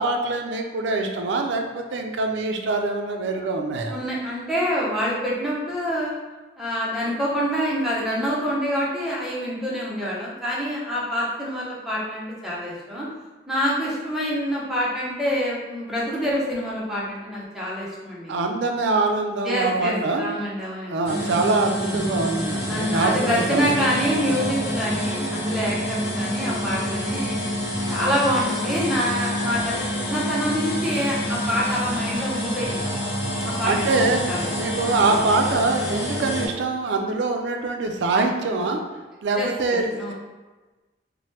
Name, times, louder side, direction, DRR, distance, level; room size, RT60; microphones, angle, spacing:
voice 1, 0.0-4.0 18.3-20.3 20.9-23.8 33.7-34.3 34.5-38.8 39.2-40.1, right 3 dB, 75° right, 3 dB, 0.4 m, -24 dB
voice 2, 3.9-6.2 6.6-13.1 13.5-18.4 19.4-21.0 22.7-27.4 27.9-29.8 30.1-32.9 33.4-34.5 39.4-40.1, equal, ahead, -7 dB, 0.6 m, -26 dB
sound 1, 21.0-36.5, equal, 60° left, 0.9 m, -27 dB
2.9 x 2.1 x 3.0 m, 1.2 s
head